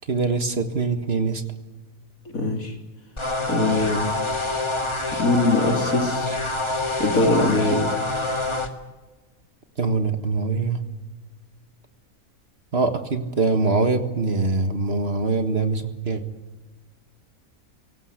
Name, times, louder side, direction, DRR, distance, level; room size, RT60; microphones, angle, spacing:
voice 1, 0.1-1.4 9.8-10.8 12.7-16.2, right 3 dB, 45° right, 8 dB, 1.9 m, -23 dB
voice 2, 2.3-2.8 3.5-4.1 5.2-6.4 7.0-7.8, left 2 dB, 75° left, 4 dB, 3.5 m, -22 dB
sound 1, 3.2-8.7, left 2 dB, 20° left, 1.9 m, -26 dB
22.5 x 18.0 x 8.3 m, 1.2 s
omnidirectional pair, 1.5 m